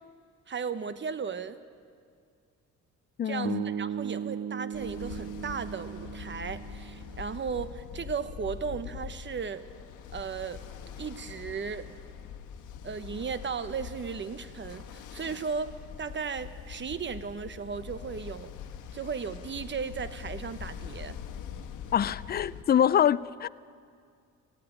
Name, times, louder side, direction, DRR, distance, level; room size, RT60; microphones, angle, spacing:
voice 1, 0.5-1.6 3.2-9.7 10.1-10.6 11.0-11.9 12.8-18.5 18.9-21.2, right 6 dB, 40° right, 12 dB, 1.1 m, -36 dB
voice 2, 3.2-3.6 21.9-23.5, left 9 dB, 30° left, 18 dB, 0.4 m, -25 dB
sound 1, 3.4-7.6, right 8 dB, 55° right, 0.5 m, -37 dB
Ocean, 4.7-22.6, left 8 dB, 85° left, 1.3 m, -43 dB
18.5 x 15.0 x 9.9 m, 2.2 s
cardioid pair, 90°, 30 cm